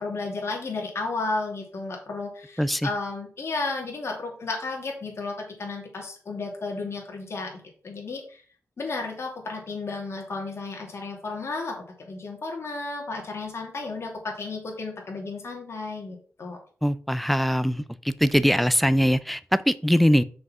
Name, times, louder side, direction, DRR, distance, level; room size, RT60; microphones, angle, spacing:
voice 1, 0.0-8.4 8.8-16.6, left 3 dB, 60° left, 2.7 m, -33 dB
voice 2, 2.6-2.9 16.8-20.2, equal, ahead, 0.5 m, -22 dB
6.2 x 4.8 x 6.0 m
wide cardioid pair, 95°, 5 cm